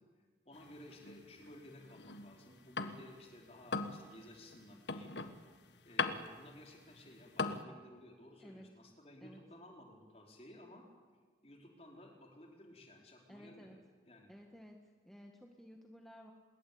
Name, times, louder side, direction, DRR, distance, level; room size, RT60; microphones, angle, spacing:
voice 1, 0.0-5.2 5.8-10.8 11.4-13.8 14.0-14.3, left 1 dB, 35° left, 1 dB, 4.8 m, -56 dB
sound 1, 0.5-3.2 3.6-7.6, left 4 dB, 80° left, 1.6 m, -40 dB
voice 2, 13.3-13.8 14.3-14.8 15.0-16.3, equal, ahead, 2 dB, 1.7 m, -54 dB
26.0 x 22.0 x 8.8 m, 1.4 s
head